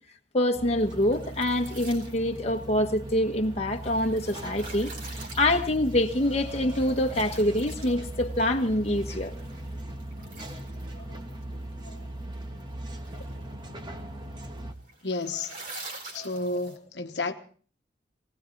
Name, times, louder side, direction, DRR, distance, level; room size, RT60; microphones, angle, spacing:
voice 1, 0.3-9.3 11.0-11.1 16.1-16.3, left 1 dB, 35° left, 1.4 m, -26 dB
sound 1, 0.5-14.7, right 1 dB, 25° right, 1.4 m, -39 dB
sound 2, 0.8-16.8, right 2 dB, 50° right, 4.4 m, -47 dB
voice 2, 15.0-15.5 16.1-17.3, left 2 dB, 70° left, 1.2 m, -31 dB
19.0 x 18.5 x 3.9 m
head